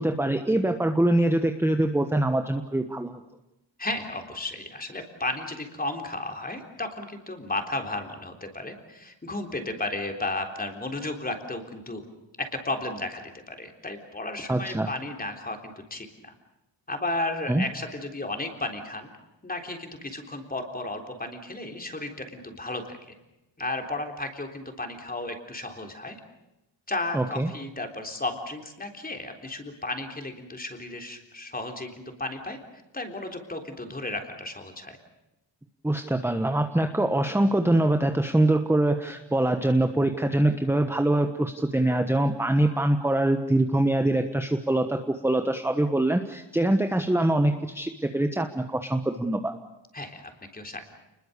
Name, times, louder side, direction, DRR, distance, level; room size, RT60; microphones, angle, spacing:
voice 1, 0.0-3.2 14.5-14.9 17.5-17.6 27.1-27.5 35.8-49.5, right 1 dB, 5° right, 6 dB, 1.2 m, -24 dB
voice 2, 3.8-12.0 12.4-16.3 16.9-19.1 19.4-23.2 23.6-26.2 26.9-32.6 32.9-35.0 49.9-51.0, left 2 dB, 20° left, 4 dB, 3.7 m, -34 dB
29.5 x 21.5 x 6.9 m, 0.94 s
wide cardioid pair, 140°, 45 cm